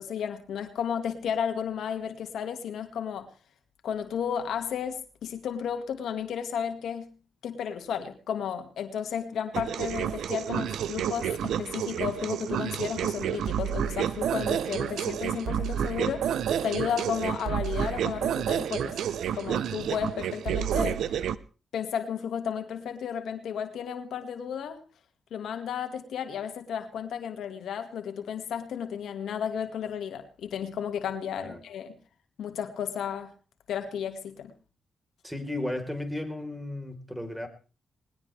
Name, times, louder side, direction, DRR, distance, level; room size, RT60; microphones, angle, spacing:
voice 1, 0.0-3.3 3.8-7.1 7.4-19.0 19.3-21.0 21.7-24.8 25.3-31.9 32.4-33.3 33.7-34.5, left 8 dB, 85° left, 7 dB, 2.0 m, -33 dB
sound 1, 9.5-21.4, right 9 dB, 90° right, 0.8 m, -30 dB
voice 2, 35.2-37.5, left 1 dB, 5° right, 5 dB, 4.1 m, -34 dB
20.0 x 19.5 x 3.4 m, 0.36 s
cardioid pair, 80°, 0 cm